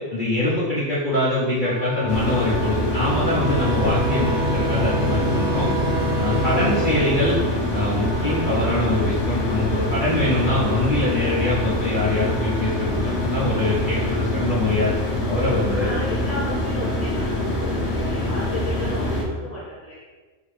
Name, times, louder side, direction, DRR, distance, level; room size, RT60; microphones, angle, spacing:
voice 1, 0.1-5.7 6.2-7.4 7.7-15.9, left 1 dB, 50° left, -9 dB, 0.7 m, -23 dB
Wind instrument woodwind instrument, 1.6-14.5, left 1 dB, 80° right, 1.0 m, -38 dB
sound 1, 2.1-19.2, left 1 dB, 75° left, 1.2 m, -25 dB
voice 2, 3.1-3.7 6.2-6.5 15.7-20.0, equal, 10° right, -8 dB, 0.9 m, -34 dB
sound 2, 3.4-8.5, right 1 dB, 40° right, 1.2 m, -27 dB
3.8 x 2.6 x 3.1 m, 1.3 s
omnidirectional pair, 1.5 m